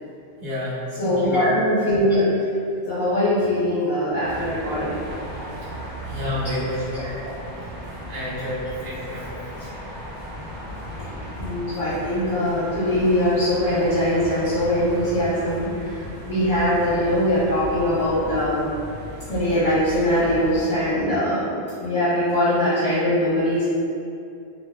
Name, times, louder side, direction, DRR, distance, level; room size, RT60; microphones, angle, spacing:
voice 1, 0.4-1.4 6.1-7.1 8.1-9.7, left 1 dB, 45° right, -12 dB, 0.9 m, -30 dB
voice 2, 1.0-2.2 2.9-5.0 11.0-11.1 11.4-18.7 19.3-23.7, left 1 dB, 50° left, -13 dB, 0.9 m, -22 dB
sound 1, 4.2-20.6, equal, 90° right, 1.0 m, -36 dB
2.6 x 2.4 x 2.2 m, 2.5 s
omnidirectional pair, 1.1 m